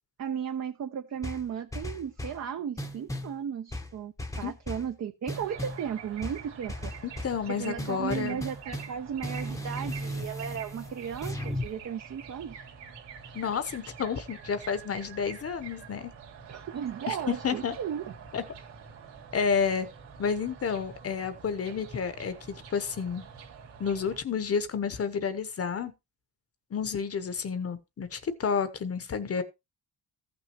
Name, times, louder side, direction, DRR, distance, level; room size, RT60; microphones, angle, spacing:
voice 1, 0.2-6.9 7.5-12.5 16.5-18.0, right 8 dB, 40° right, 0.7 m, -35 dB
sound 1, 1.2-2.4 2.8-3.4 3.7-4.9 5.3-5.8 6.2-7.4 7.8-11.7, equal, 10° left, 0.8 m, -36 dB
sound 2, 5.3-24.2, right 7 dB, 75° right, 2.7 m, -46 dB
voice 2, 7.2-8.4 13.3-16.1 17.1-17.8 18.3-18.4 19.3-19.9 20.2-23.2 23.8-25.9 26.7-29.4, left 6 dB, 35° left, 0.9 m, -30 dB
15.0 x 6.2 x 3.0 m
cardioid pair, 160°, 42 cm